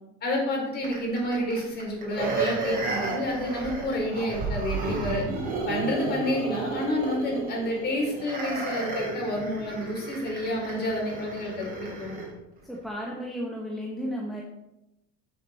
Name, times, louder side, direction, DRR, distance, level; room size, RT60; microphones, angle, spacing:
voice 1, 0.2-5.2 5.6-12.2, left 1 dB, 30° left, -2 dB, 4.5 m, -29 dB
sound 1, 0.8-12.3 12.7-12.8, right 3 dB, 30° right, 3.6 m, -33 dB
voice 2, 12.6-14.4, equal, ahead, -3 dB, 1.3 m, -33 dB
12.0 x 7.2 x 4.4 m, 0.93 s
cardioid pair, 150°, 31 cm